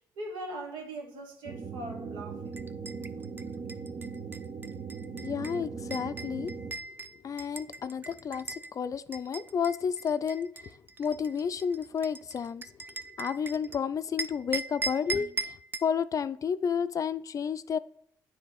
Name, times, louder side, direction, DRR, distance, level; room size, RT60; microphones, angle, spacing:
voice 1, 0.2-2.5, right 1 dB, 85° right, 1.5 m, -40 dB
sound 1, 1.5-6.7, right 5 dB, 60° right, 0.7 m, -39 dB
sound 2, 2.5-8.7 9.1-13.8 14.2-15.9, right 3 dB, 25° right, 0.4 m, -39 dB
voice 2, 5.2-6.6 7.2-12.8 13.2-17.8, left 7 dB, 45° left, 0.4 m, -31 dB
9.3 x 3.3 x 4.0 m
cardioid pair, 75°, 8 cm